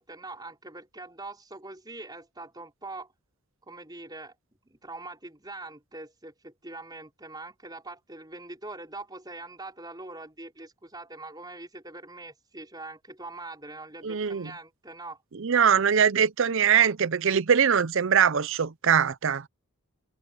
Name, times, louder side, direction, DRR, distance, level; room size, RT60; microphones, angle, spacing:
voice 1, 0.0-3.1 3.7-4.3 4.6-15.2, right 2 dB, 20° right, 5.2 m, -43 dB
voice 2, 14.0-14.5 15.3-19.4, right 7 dB, 60° right, 0.6 m, -22 dB
head